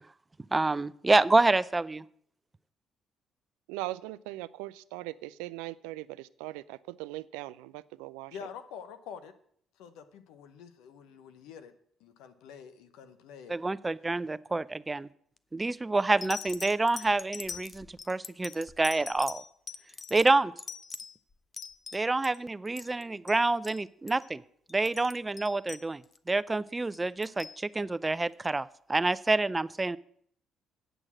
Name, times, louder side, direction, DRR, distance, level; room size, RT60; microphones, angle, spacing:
voice 1, 0.5-2.0 13.5-15.1 15.5-19.4 20.1-20.5 21.9-24.4 24.7-26.0 26.3-30.0, right 2 dB, 20° right, 17 dB, 0.4 m, -27 dB
voice 2, 3.7-8.4, right 18 dB, 85° right, 17 dB, 0.3 m, -40 dB
voice 3, 8.3-9.3 9.8-11.7 12.0-13.6, left 7 dB, 80° left, 10 dB, 0.9 m, -46 dB
sound 1, 15.4-15.6 16.2-22.4 22.7-23.4 23.6-23.8 24.1-24.3 24.7-26.3 26.9-27.6 28.4-28.5, left 5 dB, 35° left, 0.6 m, -43 dB
9.1 x 6.2 x 7.4 m, 0.64 s
hypercardioid pair, 55°, 0 cm